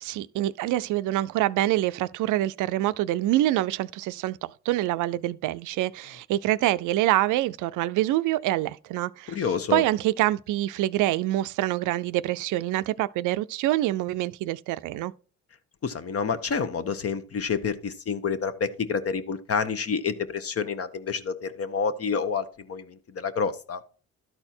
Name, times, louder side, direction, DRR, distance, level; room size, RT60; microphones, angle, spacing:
voice 1, 0.0-9.4 9.7-15.1, right 15 dB, 85° right, 0.5 m, -26 dB
voice 2, 9.3-9.8 15.8-23.8, left 5 dB, 50° left, 1.1 m, -28 dB
12.5 x 4.4 x 4.3 m
cardioid pair, 90°, 30 cm